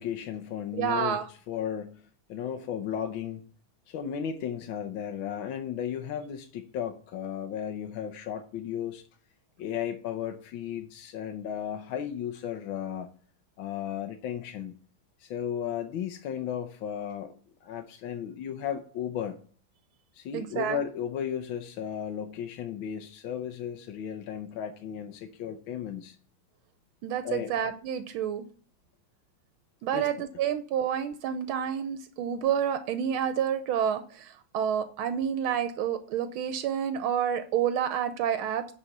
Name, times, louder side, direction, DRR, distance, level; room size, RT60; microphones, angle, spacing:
voice 1, 0.0-2.0 2.3-3.4 3.9-9.0 9.6-13.1 13.6-14.7 15.2-17.3 17.6-19.4 20.1-26.2 27.2-27.5 29.9-30.1, left 9 dB, 70° left, 6 dB, 1.5 m, -35 dB
voice 2, 0.7-1.2 20.3-20.8 27.0-28.4 29.8-38.6, right 8 dB, 80° right, 10 dB, 1.5 m, -29 dB
10.5 x 4.2 x 6.5 m, 0.44 s
omnidirectional pair, 2.3 m